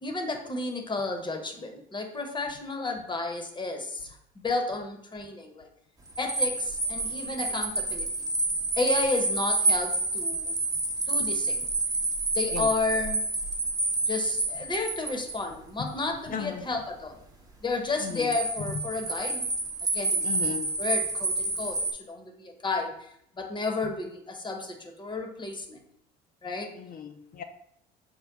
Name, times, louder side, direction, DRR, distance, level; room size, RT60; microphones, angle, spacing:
voice 1, 0.0-4.0 4.4-5.7 6.2-8.1 8.8-10.5 11.1-11.7 12.4-13.2 14.1-17.2 17.6-19.5 19.9-20.2 20.8-21.8 22.1-22.9 23.4-25.8 26.4-26.7, left 3 dB, 20° left, 4 dB, 0.8 m, -32 dB
sound 1, 6.1-15.4 17.9-21.9, right 2 dB, 15° right, 0.8 m, -29 dB
voice 2, 16.3-16.7 18.0-18.8 20.2-20.7 26.8-27.4, left 7 dB, 40° left, 5 dB, 0.5 m, -36 dB
5.2 x 2.0 x 4.6 m, 0.72 s
hypercardioid pair, 75°, 21 cm